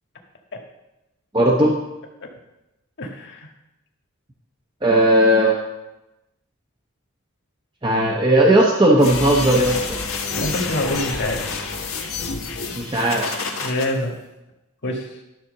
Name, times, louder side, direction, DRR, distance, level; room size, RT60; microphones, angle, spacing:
voice 1, 1.3-1.7 4.8-5.6 7.8-10.0 12.7-13.3, right 1 dB, 20° right, -2 dB, 0.9 m, -16 dB
voice 2, 3.0-3.5 10.3-11.5 13.6-14.1 14.8-15.1, left 1 dB, 55° left, 1 dB, 1.7 m, -26 dB
sound 1, 9.0-13.9, left 4 dB, 75° left, 1.7 m, -28 dB
12.5 x 4.4 x 6.7 m, 0.97 s
head